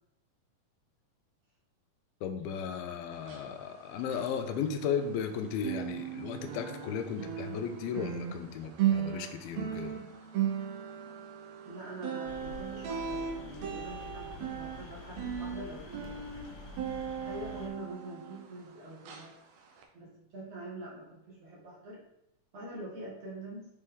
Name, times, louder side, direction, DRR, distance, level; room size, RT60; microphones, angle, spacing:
voice 1, 2.2-10.0, left 7 dB, 90° left, 6 dB, 2.5 m, -35 dB
sound 1, 3.1-5.3 5.6-18.7 19.0-19.3 19.8-19.9, right 9 dB, 80° right, 1.5 m, -37 dB
voice 2, 11.7-16.3 17.2-19.3 19.9-22.0 22.5-23.7, right 1 dB, 55° right, -5 dB, 2.3 m, -44 dB
sound 2, 12.3-17.7, left 4 dB, 70° left, 2.5 m, -47 dB
6.9 x 4.3 x 3.7 m, 0.81 s
omnidirectional pair, 4.3 m